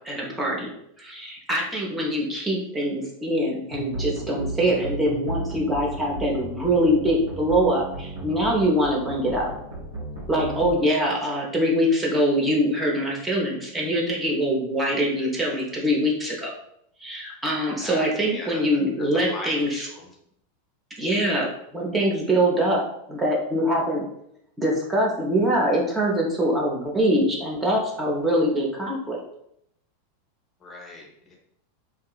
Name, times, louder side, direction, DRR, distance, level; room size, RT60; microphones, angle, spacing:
voice 1, 0.0-0.7 1.0-9.5 10.3-16.5 17.0-19.9 21.0-22.8 23.1-24.0 24.6-29.2, equal, 15° right, -2 dB, 0.7 m, -23 dB
sound 1, 3.7-10.7, right 1 dB, 75° right, 1.0 m, -34 dB
voice 2, 19.3-19.8 30.6-31.3, left 2 dB, 25° left, -1 dB, 0.6 m, -38 dB
2.7 x 2.4 x 2.3 m, 0.75 s
figure-of-eight pair, 90°, 0 cm